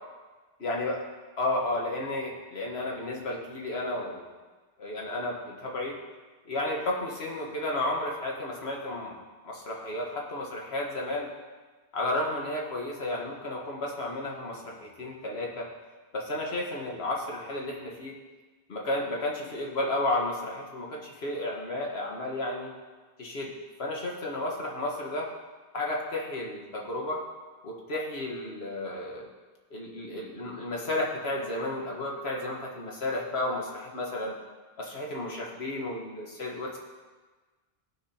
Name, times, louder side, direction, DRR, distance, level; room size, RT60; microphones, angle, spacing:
voice 1, 0.6-1.0 1.4-4.2 4.8-6.0 6.4-9.2 9.4-11.3 11.9-15.7 16.1-18.2 18.7-22.7 23.2-25.3 25.7-27.2 27.6-29.3 29.7-34.4 34.8-36.8, left 1 dB, 80° left, -2 dB, 1.7 m, -32 dB
16.5 x 5.9 x 2.9 m, 1.3 s
omnidirectional pair, 1.0 m